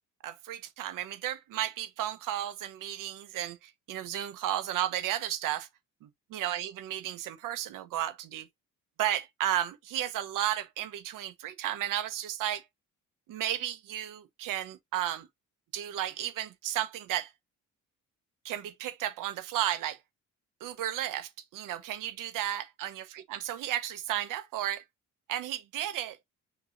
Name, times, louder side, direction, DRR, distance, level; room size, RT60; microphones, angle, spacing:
voice 1, 0.2-5.7 6.3-8.5 9.0-12.6 13.3-15.3 15.7-17.3 18.4-20.0 20.6-24.8 25.3-26.2, right 12 dB, 90° right, 1.1 m, -33 dB
6.1 x 3.2 x 2.6 m
cardioid pair, 150°, 31 cm